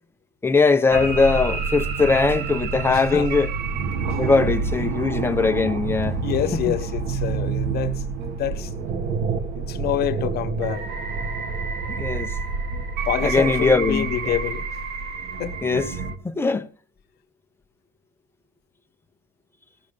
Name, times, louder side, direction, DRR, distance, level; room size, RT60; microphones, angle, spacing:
voice 1, 0.4-3.5 4.2-6.2 6.5-6.7 11.9-12.4 13.2-14.1 15.6-15.9 16.2-16.7, left 4 dB, 15° left, 1.0 m, -20 dB
sound 1, 0.9-16.2, right 5 dB, 75° right, 1.7 m, -28 dB
voice 2, 2.9-3.3 4.1-4.3 6.2-9.2 9.5-10.9 13.0-14.8 15.4-15.6, left 11 dB, 70° left, 1.3 m, -28 dB
17.5 x 6.5 x 5.4 m
cardioid pair, 110°, 17 cm